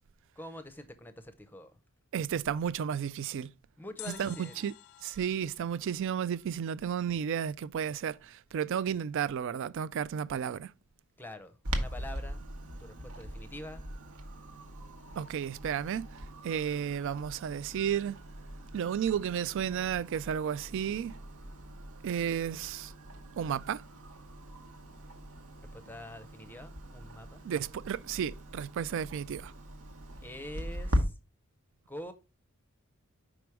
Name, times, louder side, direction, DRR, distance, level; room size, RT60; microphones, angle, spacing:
voice 1, 0.4-1.7 3.8-4.6 11.2-12.4 12.8-13.8 25.6-27.4 30.2-31.1 31.9-32.1, left 1 dB, 10° left, 0.6 m, -45 dB
voice 2, 2.1-3.5 4.1-4.7 5.0-10.7 15.2-18.2 18.7-21.2 22.0-22.9 23.4-23.8 27.4-29.5, right 8 dB, 60° right, 0.3 m, -33 dB
sound 1, 4.0-7.1 7.3-7.4, left 13 dB, 75° left, 0.5 m, -51 dB
Clock, 11.6-31.0, equal, 75° right, 1.0 m, -40 dB
5.1 x 4.9 x 4.5 m
head